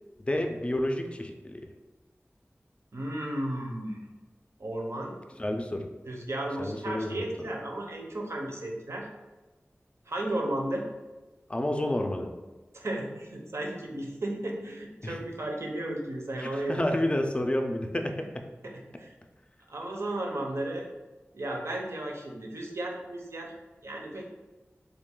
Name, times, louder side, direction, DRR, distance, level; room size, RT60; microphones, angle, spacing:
voice 1, 0.2-1.6 5.4-5.9 6.6-7.3 11.5-12.3 15.0-15.2 16.4-18.4, left 1 dB, 25° left, 4 dB, 0.4 m, -30 dB
voice 2, 2.9-4.0 4.6-5.1 6.1-9.1 10.1-10.9 12.7-17.0 18.6-19.1 19.7-20.9 21.3-23.5 23.8-24.4, right 1 dB, 65° right, 0 dB, 0.6 m, -34 dB
3.3 x 2.3 x 3.6 m, 1.2 s
wide cardioid pair, 55°, 5 cm